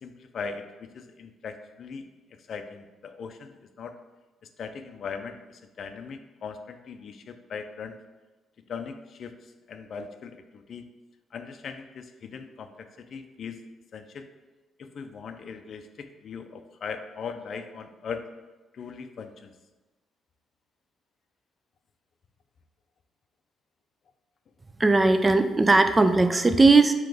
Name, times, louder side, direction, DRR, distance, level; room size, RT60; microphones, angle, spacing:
voice 1, 0.0-2.0 2.5-4.0 4.6-8.0 8.7-10.9 11.3-13.6 13.9-14.3 14.8-18.3 18.7-19.5, left 5 dB, 55° left, 8 dB, 0.4 m, -39 dB
voice 2, 24.8-26.9, right 3 dB, 20° right, 9 dB, 0.3 m, -18 dB
3.8 x 3.0 x 4.7 m, 1.2 s
cardioid pair, 90°, 0 cm